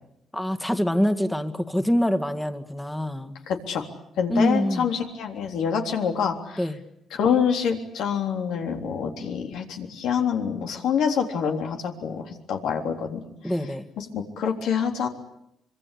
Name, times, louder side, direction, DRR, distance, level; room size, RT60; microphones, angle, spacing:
voice 1, 0.3-3.4 4.3-4.9 6.6-6.8 13.4-13.9, equal, 5° left, 9 dB, 2.0 m, -25 dB
voice 2, 3.5-3.8 4.2-6.6 7.1-13.2 14.0-15.1, left 7 dB, 80° left, 3 dB, 3.6 m, -26 dB
25.5 x 24.5 x 8.5 m, 0.79 s
cardioid pair, 90°, 0 cm